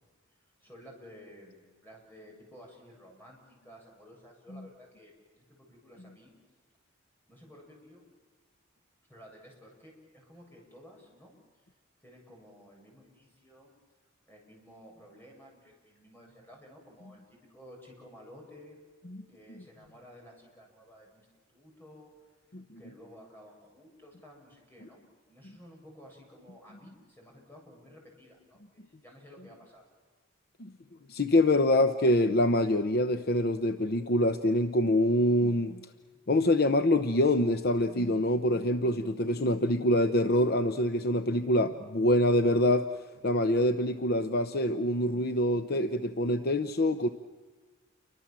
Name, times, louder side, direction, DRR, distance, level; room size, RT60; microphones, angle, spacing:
voice 1, 0.6-6.3 7.3-8.0 9.1-11.6 12.0-13.7 14.3-18.8 19.3-22.1 22.8-25.0 25.3-29.8, equal, 10° left, -1 dB, 7.9 m, -53 dB
voice 2, 31.1-35.8 36.3-42.9 43.2-47.1, left 1 dB, 50° left, 8 dB, 0.8 m, -25 dB
29.0 x 24.5 x 7.5 m, 1.4 s
head